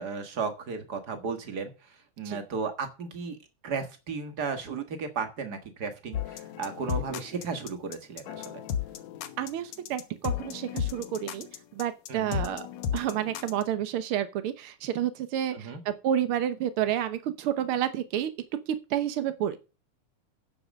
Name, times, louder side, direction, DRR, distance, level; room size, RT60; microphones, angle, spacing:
voice 1, 0.0-1.7 2.2-3.4 3.6-8.6 12.1-12.4 15.5-15.8, right 5 dB, 40° right, 1.5 m, -34 dB
sound 1, 6.1-13.6, left 8 dB, 65° left, 2.1 m, -34 dB
voice 2, 9.4-11.5 11.7-12.7 12.9-18.3 18.7-19.6, right 10 dB, 75° right, 1.2 m, -30 dB
9.7 x 7.8 x 6.4 m
omnidirectional pair, 3.8 m